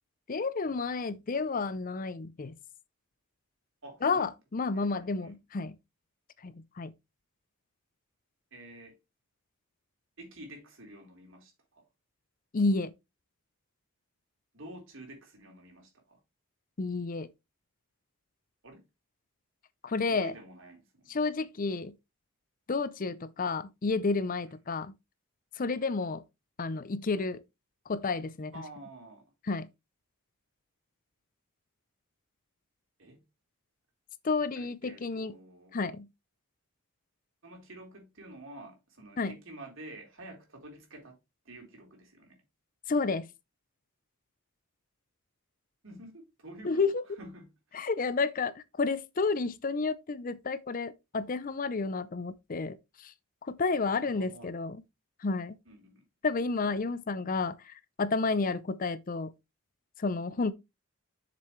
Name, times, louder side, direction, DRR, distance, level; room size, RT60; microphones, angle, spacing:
voice 1, 0.3-2.6 4.0-5.7 6.4-6.9 12.5-12.9 16.8-17.3 19.8-20.3 21.1-21.9 22.7-24.9 25.6-26.2 26.6-27.4 27.9-28.5 29.5-29.7 34.2-35.3 35.7-36.1 39.2-39.3 42.9-43.3 46.6-47.0 47.7-53.1 53.4-54.8 55.2-55.6 56.2-59.3 60.0-60.5, left 4 dB, 40° left, 0.5 m, -31 dB
voice 2, 3.8-4.3 4.7-5.4 8.5-9.0 10.2-11.8 14.5-16.2 18.6-18.8 20.1-21.1 28.5-29.2 33.0-33.2 34.6-35.8 37.4-41.2 41.5-42.4 45.8-46.8 47.2-47.8 53.9-54.6 55.7-56.0 58.4-58.5, right 1 dB, 60° right, 3.7 m, -49 dB
7.7 x 6.8 x 3.1 m
head